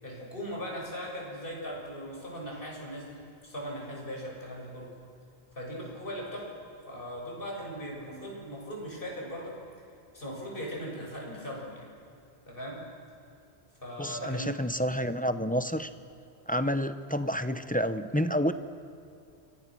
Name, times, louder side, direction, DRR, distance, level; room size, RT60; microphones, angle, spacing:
voice 1, 0.0-4.9 5.5-6.6 6.9-9.6 10.1-11.9 12.5-12.8 13.8-14.6, equal, 50° left, -2 dB, 7.4 m, -39 dB
voice 2, 14.0-15.9 16.5-18.5, equal, 10° left, 10 dB, 0.8 m, -29 dB
29.5 x 25.0 x 6.3 m, 2.6 s
omnidirectional pair, 1.1 m